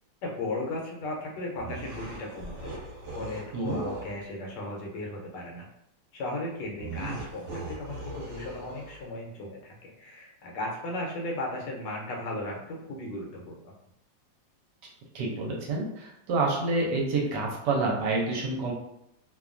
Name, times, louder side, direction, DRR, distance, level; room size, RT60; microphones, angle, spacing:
voice 1, 0.2-2.8 3.1-5.7 6.1-13.7, left 2 dB, 75° left, -1 dB, 1.2 m, -36 dB
sound 1, 1.6-4.2 6.8-9.1, right 2 dB, 50° right, 1.2 m, -39 dB
voice 2, 15.1-18.7, right 3 dB, 75° right, -1 dB, 1.1 m, -28 dB
2.9 x 2.2 x 2.4 m, 0.78 s
omnidirectional pair, 2.0 m